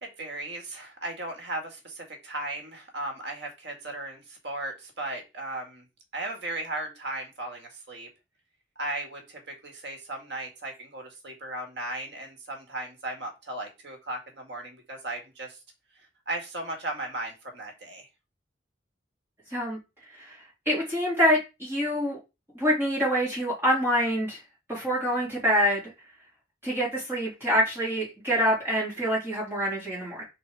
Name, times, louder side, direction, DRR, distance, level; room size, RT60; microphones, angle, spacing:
voice 1, 0.0-5.8 6.1-8.1 8.8-15.6 16.3-18.1 25.3-25.4, right 2 dB, 65° right, 3 dB, 2.3 m, -36 dB
voice 2, 20.7-22.2 22.5-24.4 24.7-25.9 26.6-30.2, equal, 10° right, -6 dB, 3.8 m, -26 dB
5.2 x 4.2 x 4.9 m, 0.26 s
head